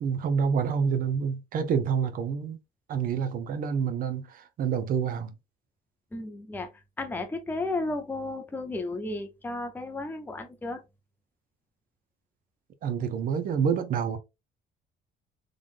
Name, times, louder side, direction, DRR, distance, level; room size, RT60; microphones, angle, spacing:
voice 1, 0.0-2.6 2.9-5.3 12.8-14.2, right 6 dB, 55° right, 0.8 m, -27 dB
voice 2, 6.1-6.7 7.0-10.8, left 2 dB, 10° left, 0.7 m, -33 dB
3.8 x 3.3 x 2.5 m
cardioid pair, 110°, 17 cm